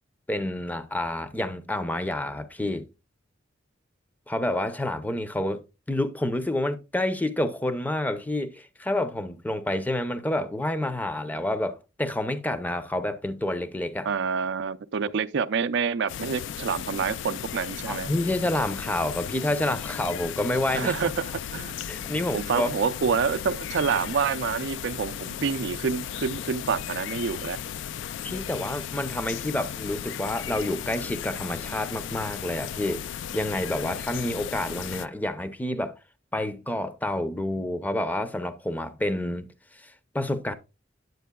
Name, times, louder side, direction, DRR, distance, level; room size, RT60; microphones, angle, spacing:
voice 1, 0.3-2.9 4.3-5.6 5.9-14.1 17.9-20.9 21.9-22.7 28.2-33.0 33.3-36.0 36.3-39.5 39.7-40.5, left 1 dB, 10° left, 0.5 m, -28 dB
voice 2, 14.0-18.1 20.7-27.6, right 6 dB, 65° right, 0.4 m, -28 dB
sound 1, 16.1-35.1, left 9 dB, 70° left, 0.3 m, -35 dB
9.2 x 7.6 x 2.2 m
head